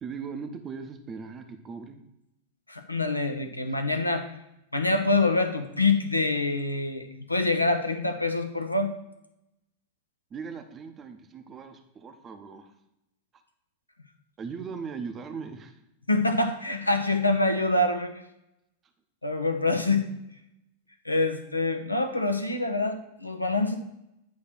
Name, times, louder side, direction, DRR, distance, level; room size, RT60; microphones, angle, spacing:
voice 1, 0.0-2.0 10.3-12.7 14.4-15.8, right 5 dB, 25° right, 6 dB, 0.7 m, -39 dB
voice 2, 2.7-4.3 4.7-8.9 16.1-18.1 19.2-20.1 21.0-23.8, left 2 dB, 85° left, 7 dB, 0.7 m, -25 dB
9.5 x 3.2 x 5.9 m, 0.84 s
figure-of-eight pair, 90°, 0 cm